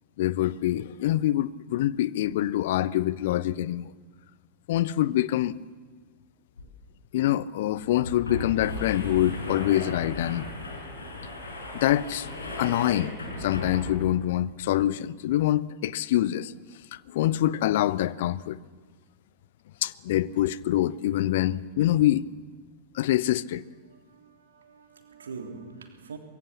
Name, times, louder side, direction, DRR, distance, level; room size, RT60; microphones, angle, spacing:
voice 1, 0.2-3.9 4.7-5.6 7.1-10.5 11.7-12.3 12.6-13.1 13.4-16.5 16.9-18.6 19.8-22.3 22.9-23.6, left 13 dB, 55° left, 0.7 m, -25 dB
sound 1, 6.6-6.7 6.9-7.0 7.8-14.2, left 2 dB, 75° left, 5.9 m, -36 dB
voice 2, 23.8-26.2, right 5 dB, 70° right, 3.3 m, -43 dB
24.5 x 22.0 x 7.3 m
figure-of-eight pair, 90°, 0 cm